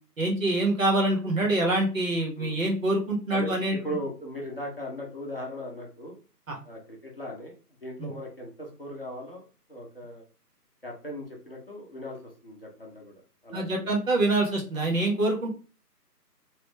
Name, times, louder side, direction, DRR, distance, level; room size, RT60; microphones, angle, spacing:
voice 1, 0.2-3.8 6.5-6.6 8.0-8.1 13.5-15.5, right 2 dB, 55° right, -1 dB, 1.1 m, -25 dB
voice 2, 3.3-6.2 6.6-10.2 10.8-13.1 13.4-13.9, equal, 40° left, -2 dB, 0.6 m, -38 dB
3.0 x 2.2 x 3.1 m, 0.37 s
figure-of-eight pair, 165°, 48 cm